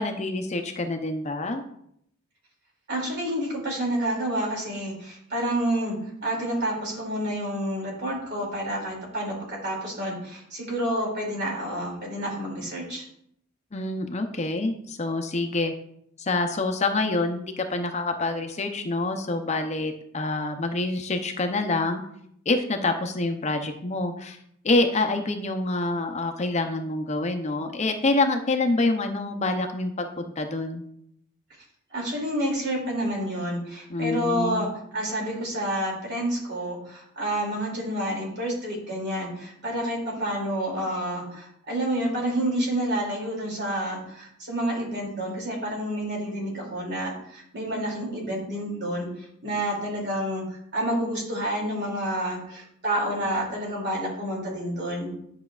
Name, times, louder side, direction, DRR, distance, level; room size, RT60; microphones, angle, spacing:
voice 1, 0.0-1.6 13.7-15.7 16.2-22.0 22.5-24.4 24.6-30.8 33.9-34.7, left 2 dB, 35° left, 5 dB, 0.6 m, -26 dB
voice 2, 2.9-6.0 6.2-13.0 31.9-49.1 49.4-55.1, right 1 dB, 55° right, -2 dB, 2.6 m, -29 dB
10.0 x 5.7 x 2.4 m, 0.71 s
head